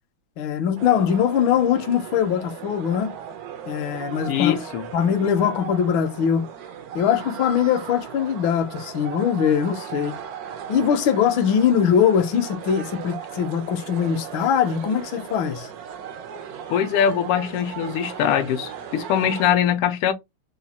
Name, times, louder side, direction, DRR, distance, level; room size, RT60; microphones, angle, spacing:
voice 1, 0.4-3.1 3.7-4.6 4.9-6.4 6.9-10.1 10.7-15.7, left 8 dB, 70° left, 1.4 m, -21 dB
sound 1, 0.8-19.5, right 8 dB, 75° right, 0.8 m, -37 dB
voice 2, 4.3-4.9 16.7-20.1, left 9 dB, 90° left, 1.6 m, -22 dB
4.2 x 2.2 x 4.1 m
omnidirectional pair, 2.4 m